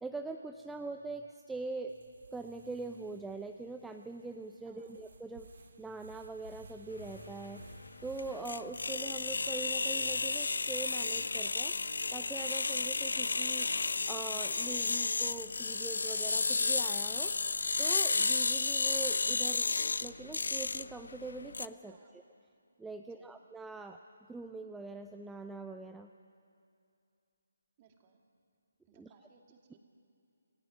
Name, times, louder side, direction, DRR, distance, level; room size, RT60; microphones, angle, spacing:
voice 1, 0.0-1.9 2.3-5.5 5.8-7.7 8.0-11.8 12.1-13.7 14.1-17.3 17.8-19.7 20.0-22.2 22.8-24.0 24.3-26.1 28.9-29.1, right 3 dB, 5° right, 5 dB, 0.5 m, -43 dB
sound 1, 1.9-19.2, right 3 dB, 65° right, 2.2 m, -60 dB
voice 2, 4.7-5.0 21.9-22.1 23.0-23.3 27.8-28.2 28.9-29.8, right 6 dB, 30° right, 3 dB, 2.3 m, -64 dB
sound 2, 7.0-21.7, left 3 dB, 75° left, 0.5 m, -32 dB
27.5 x 17.5 x 6.1 m, 2.5 s
figure-of-eight pair, 150°, 0 cm